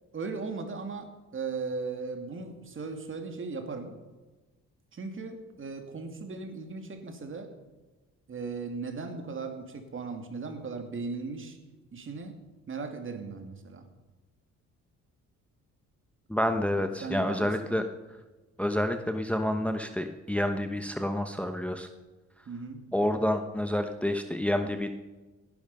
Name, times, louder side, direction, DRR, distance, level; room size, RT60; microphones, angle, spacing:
voice 1, 0.1-4.0 4.9-7.5 8.3-11.6 11.9-12.4 12.7-13.9 17.0-17.9 22.5-22.8, right 4 dB, 40° right, 6 dB, 2.5 m, -37 dB
voice 2, 16.3-17.8 18.6-21.9 22.9-24.9, left 1 dB, 5° left, 7 dB, 1.0 m, -28 dB
17.0 x 11.0 x 5.5 m, 1.2 s
cardioid pair, 90°, 30 cm